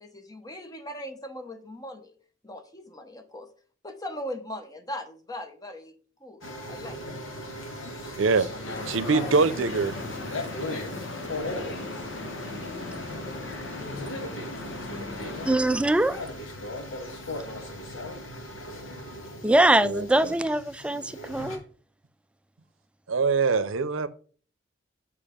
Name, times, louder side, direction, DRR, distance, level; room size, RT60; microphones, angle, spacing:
voice 1, 0.0-2.1 2.4-3.5 3.8-5.9 6.2-6.4 6.7-7.0, left 1 dB, 20° left, 0.9 m, -39 dB
sound 1, 6.4-21.6, left 1 dB, 85° left, 1.8 m, -38 dB
voice 2, 8.2-8.5 8.9-9.9 19.8-20.3 23.1-24.1, right 4 dB, 75° right, 0.6 m, -24 dB
sound 2, 8.6-15.6, left 2 dB, 65° left, 1.5 m, -38 dB
voice 3, 15.5-16.2 19.4-21.6, right 1 dB, 5° right, 0.3 m, -22 dB
7.1 x 4.9 x 5.1 m
head